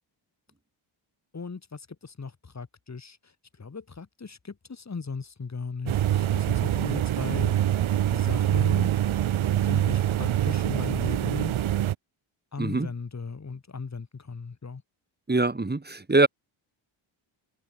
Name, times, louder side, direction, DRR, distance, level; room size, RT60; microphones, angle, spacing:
voice 1, 1.3-3.3 3.6-7.5 8.1-8.9 9.6-11.5 12.5-14.8, left 4 dB, 35° left, 6.8 m, -37 dB
sound 1, 5.9-11.9, right 12 dB, 75° right, 4.1 m, -25 dB
voice 2, 12.6-12.9 15.3-16.3, right 2 dB, 20° right, 6.7 m, -23 dB
cardioid pair, 85°, 48 cm